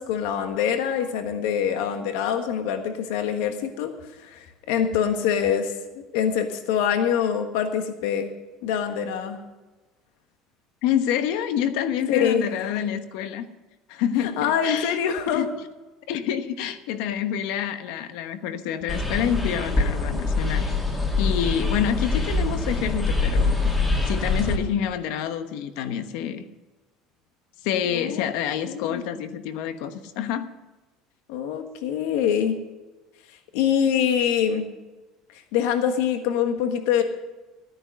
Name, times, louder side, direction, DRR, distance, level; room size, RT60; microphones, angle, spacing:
voice 1, 0.0-8.3 8.6-9.4 12.1-12.5 14.2-15.5 27.9-28.3 28.7-29.0 31.3-32.6 33.5-34.7 35.5-37.0, left 8 dB, 85° left, 6 dB, 1.4 m, -24 dB
voice 2, 10.8-13.4 13.9-15.0 15.3-15.5 16.1-20.7 21.2-23.8 24.1-26.4 27.6-30.5, left 9 dB, 70° left, 10 dB, 1.1 m, -27 dB
sound 1, 18.9-24.6, left 3 dB, 15° left, 1.7 m, -24 dB
14.0 x 9.6 x 6.3 m, 1.2 s
cardioid pair, 170°, 0 cm